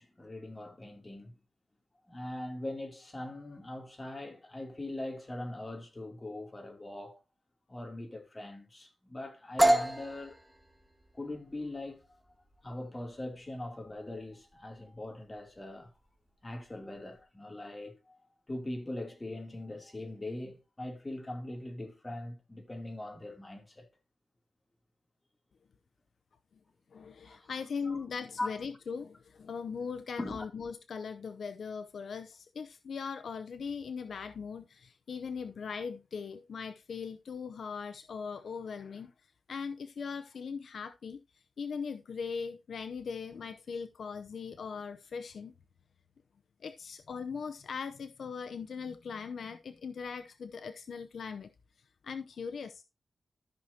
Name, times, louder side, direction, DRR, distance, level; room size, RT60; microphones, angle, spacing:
voice 1, 0.0-1.3 2.1-7.2 7.7-10.4 11.1-12.1 12.6-15.9 16.4-18.2 18.5-23.9 27.2-27.5 27.9-28.0 28.4-28.6 30.2-30.5, left 1 dB, 20° left, 3.0 m, -41 dB
sound 1, 9.6-17.2, right 1 dB, 5° right, 1.9 m, -33 dB
voice 2, 26.9-39.1 39.5-41.2 41.6-45.5 46.6-51.5 52.0-52.8, left 5 dB, 75° left, 0.7 m, -40 dB
14.0 x 6.4 x 2.8 m
cardioid pair, 75°, 0 cm